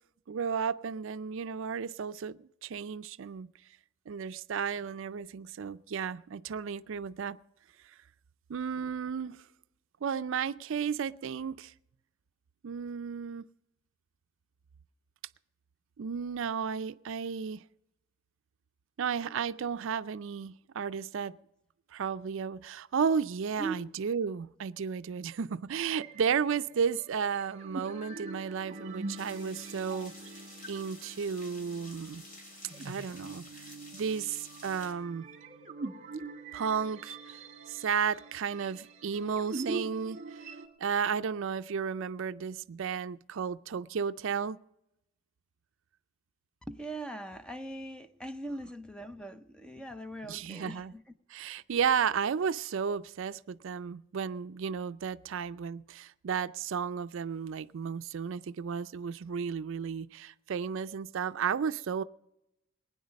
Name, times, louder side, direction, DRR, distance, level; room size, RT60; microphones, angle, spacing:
voice 1, 0.3-3.5 4.1-7.4 8.5-9.4 10.0-11.7 12.6-13.4 16.0-17.6 19.0-21.4 21.9-30.1 30.7-32.2 32.8-35.3 36.5-37.4 37.7-40.5 40.8-44.6 50.3-50.9 51.3-62.0, right 6 dB, 70° right, 0.4 m, -33 dB
sound 1, 25.9-40.7, right 3 dB, 40° right, 1.7 m, -43 dB
sound 2, 29.2-34.9, left 2 dB, 45° left, 2.6 m, -51 dB
voice 2, 46.7-51.0, right 2 dB, 5° left, 0.7 m, -40 dB
20.5 x 9.6 x 5.2 m
head